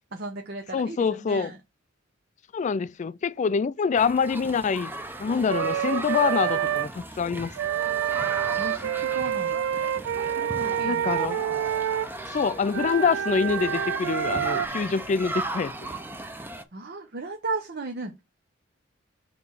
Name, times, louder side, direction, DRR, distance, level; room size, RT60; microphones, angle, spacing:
voice 1, 0.1-1.6 8.6-9.6 10.3-11.2 11.5-11.6 16.7-18.2, right 3 dB, 55° right, 0.8 m, -35 dB
voice 2, 0.7-1.5 2.5-4.9 5.2-7.5 10.8-11.4 12.3-15.9, left 5 dB, 40° left, 0.3 m, -25 dB
sound 1, 3.9-16.6, right 2 dB, 10° right, 0.7 m, -36 dB
Wind instrument woodwind instrument, 5.5-6.9 7.5-12.1 12.7-14.7, right 10 dB, 75° right, 0.3 m, -27 dB
6.8 x 3.1 x 5.5 m
head